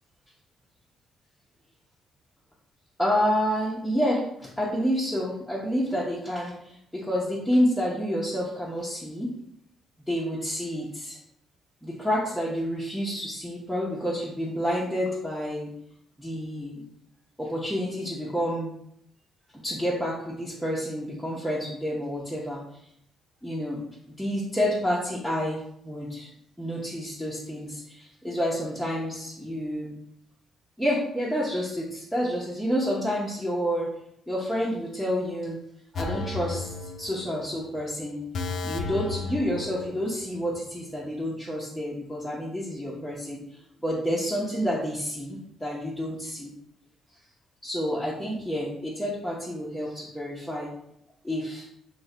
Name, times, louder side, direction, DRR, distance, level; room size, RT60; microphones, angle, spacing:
voice 1, 3.0-9.3 10.1-11.2 11.8-15.7 16.2-16.8 17.4-18.7 19.5-22.6 23.4-23.8 24.2-26.3 26.6-29.9 30.8-33.9 34.3-35.6 36.0-43.4 43.8-46.5 47.6-50.7 51.2-51.6, equal, ahead, -6 dB, 0.7 m, -29 dB
sound 1, 35.9-37.5 37.8-37.9 38.3-40.3 40.6-40.7, left 3 dB, 65° left, 0.4 m, -34 dB
3.0 x 2.1 x 3.7 m, 0.74 s
cardioid pair, 90°, 0 cm